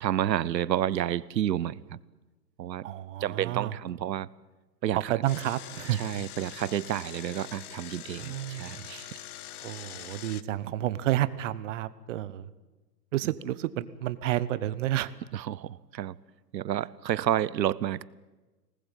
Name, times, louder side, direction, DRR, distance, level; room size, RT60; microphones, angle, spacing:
voice 1, 0.0-2.0 2.6-2.9 3.2-4.3 4.8-5.1 6.0-9.1 15.3-16.2 16.5-18.0, right 11 dB, 85° right, 0.9 m, -30 dB
voice 2, 2.8-3.8 4.9-6.0 8.2-8.9 9.6-12.5 13.1-15.1, right 14 dB, 45° right, 1.2 m, -30 dB
Engine, 5.3-10.4, left 11 dB, 60° left, 1.2 m, -44 dB
24.5 x 19.5 x 9.1 m
hypercardioid pair, 145°, 50 cm